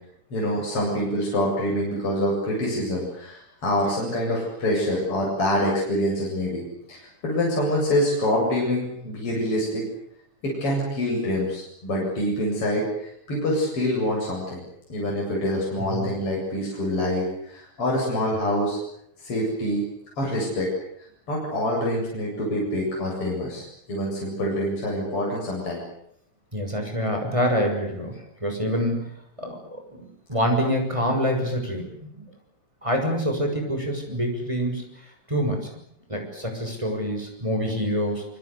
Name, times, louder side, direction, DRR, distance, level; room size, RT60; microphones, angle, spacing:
voice 1, 0.3-9.8 10.4-12.9 13.3-14.6 14.9-18.8 19.2-19.8 20.2-20.7 21.3-25.8, left 1 dB, 40° left, -3 dB, 8.9 m, -26 dB
voice 2, 26.5-28.1 28.4-29.1 29.4-32.2 32.8-34.9 35.3-35.7 36.1-38.2, equal, 10° right, 2 dB, 6.8 m, -26 dB
26.0 x 25.0 x 8.3 m, 0.72 s
omnidirectional pair, 3.7 m